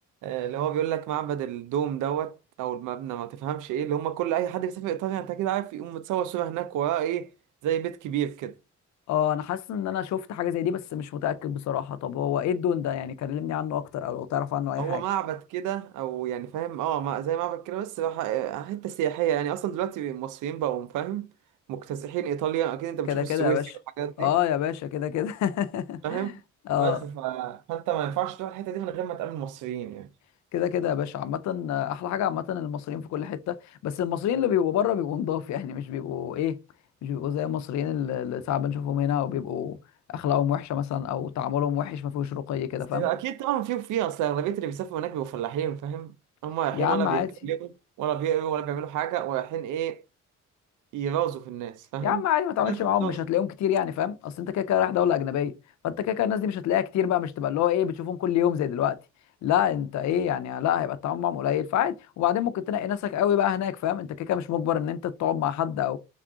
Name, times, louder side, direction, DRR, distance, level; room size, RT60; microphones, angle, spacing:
voice 1, 0.2-7.3 7.6-8.5 14.8-21.3 21.7-23.6 24.0-24.3 26.0-26.4 26.8-30.1 42.9-46.1 46.4-47.7 48.0-50.0 50.9-52.2 52.7-53.2, right 11 dB, 80° right, 0.5 m, -29 dB
voice 2, 9.1-15.0 23.1-23.6 24.2-26.4 26.7-27.0 30.5-33.6 33.8-36.6 37.0-39.8 40.1-43.1 46.7-47.3 52.0-55.5 55.8-59.0 59.4-66.0, left 10 dB, 65° left, 0.5 m, -27 dB
3.6 x 2.4 x 3.6 m
cardioid pair, 90°, 30 cm